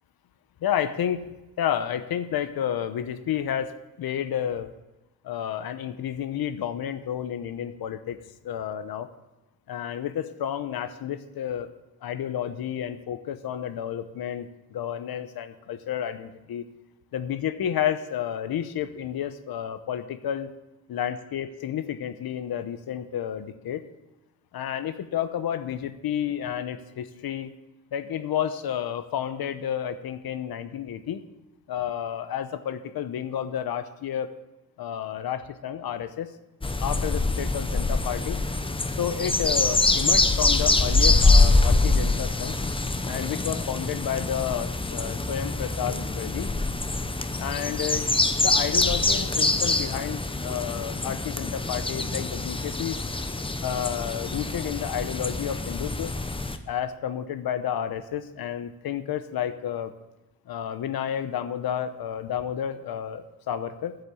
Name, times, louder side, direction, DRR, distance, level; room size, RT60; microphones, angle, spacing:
voice 1, 0.6-1.3 1.6-4.7 5.2-8.2 8.4-9.1 9.7-11.7 12.0-16.6 17.1-20.5 20.9-23.8 24.5-27.5 27.9-31.2 31.7-34.3 34.8-36.3 36.8-38.4 39.0-42.6 43.1-46.5 47.4-53.0 53.6-56.1 56.7-59.9 60.5-64.0, left 9 dB, 90° left, 11 dB, 0.9 m, -31 dB
sound 1, 36.6-56.6, left 3 dB, 15° left, 0.8 m, -24 dB
9.9 x 8.4 x 7.1 m, 0.99 s
cardioid pair, 105°, 36 cm